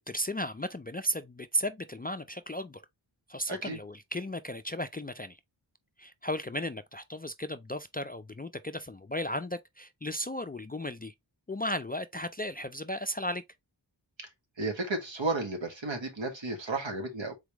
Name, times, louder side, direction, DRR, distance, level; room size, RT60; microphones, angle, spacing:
voice 1, 0.0-2.8 3.3-5.4 6.0-11.1 11.5-13.4, equal, 25° left, 0.3 m, -35 dB
voice 2, 3.5-3.8 14.2-14.3 14.6-17.4, right 2 dB, 75° right, 1.6 m, -33 dB
4.0 x 3.3 x 3.4 m
wide cardioid pair, 60°, 45 cm